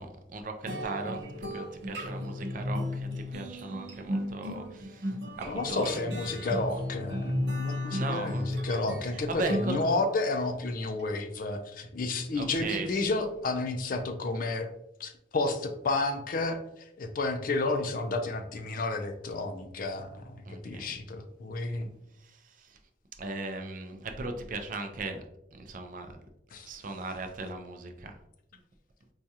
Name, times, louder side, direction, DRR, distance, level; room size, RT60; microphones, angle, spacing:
voice 1, 0.0-5.8 7.9-8.5 9.1-9.8 12.3-13.0 20.5-21.0 22.2-22.8 23.2-25.2 25.5-26.2 26.6-28.2, right 2 dB, 45° right, 6 dB, 0.5 m, -38 dB
sound 1, 0.7-10.3, left 1 dB, 70° right, 0.8 m, -35 dB
voice 2, 5.5-14.7 15.0-21.9 26.5-26.7, left 2 dB, 50° left, 7 dB, 0.4 m, -31 dB
4.6 x 2.3 x 2.7 m, 0.80 s
head